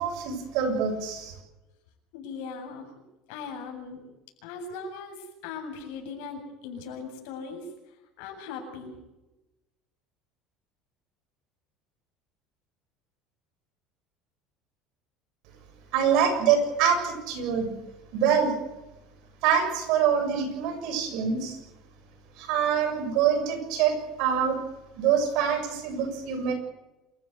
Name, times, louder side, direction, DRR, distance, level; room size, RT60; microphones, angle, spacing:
voice 1, 0.0-1.3 15.9-17.7 18.1-18.6 19.4-21.6 22.4-24.6 24.9-26.5, right 7 dB, 70° right, 7 dB, 7.1 m, -25 dB
voice 2, 2.1-2.9 3.3-4.0 4.4-7.6 8.2-8.9, left 5 dB, 80° left, 3 dB, 7.9 m, -39 dB
27.5 x 15.5 x 8.3 m, 1.0 s
cardioid pair, 145°, 0 cm